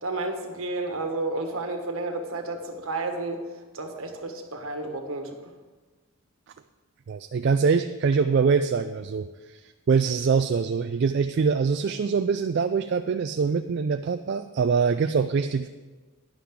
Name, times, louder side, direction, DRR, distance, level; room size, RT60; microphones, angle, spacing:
voice 1, 0.0-3.4 3.7-5.5, right 2 dB, 70° right, 5 dB, 1.3 m, -31 dB
voice 2, 7.1-15.7, right 5 dB, 50° right, 9 dB, 0.3 m, -24 dB
11.5 x 10.0 x 3.7 m, 1.3 s
head